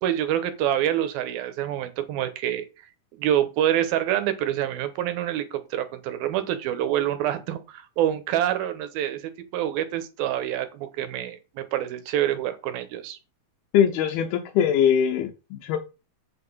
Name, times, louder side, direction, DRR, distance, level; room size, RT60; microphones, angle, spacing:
voice 1, 0.0-2.6 3.2-9.2 9.5-13.2, right 11 dB, 80° right, 11 dB, 2.9 m, -26 dB
voice 2, 13.7-15.8, left 8 dB, 90° left, 4 dB, 2.9 m, -22 dB
8.4 x 6.2 x 5.5 m, 0.30 s
omnidirectional pair, 4.3 m